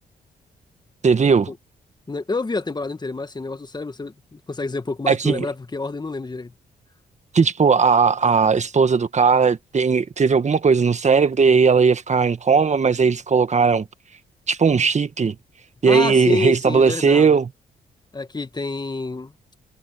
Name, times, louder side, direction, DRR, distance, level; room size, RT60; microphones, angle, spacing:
voice 1, 1.0-1.5 5.1-5.5 7.3-13.9 14.5-15.4 15.8-17.5, right 5 dB, 45° right, 1.7 m, -17 dB
voice 2, 2.1-6.5 15.9-17.4 18.1-19.3, left 3 dB, 25° left, 1.6 m, -28 dB
cardioid pair, 65°, 17 cm